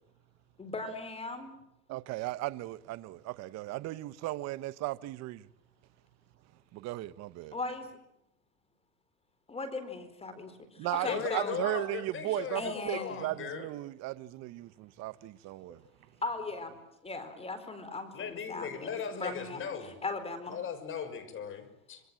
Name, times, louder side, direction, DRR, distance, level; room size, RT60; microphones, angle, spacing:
voice 1, 0.6-1.6 7.5-7.9 9.5-11.6 12.5-13.2 16.2-16.8 17.0-20.6, left 3 dB, 15° left, 4.2 m, -38 dB
voice 2, 1.9-5.5 6.7-7.6 10.8-15.8, right 17 dB, 40° right, 1.0 m, -36 dB
voice 3, 11.0-13.7 18.1-20.0 20.5-22.0, left 7 dB, 30° left, 6.0 m, -38 dB
27.0 x 24.5 x 7.6 m
supercardioid pair, 130°, 42 cm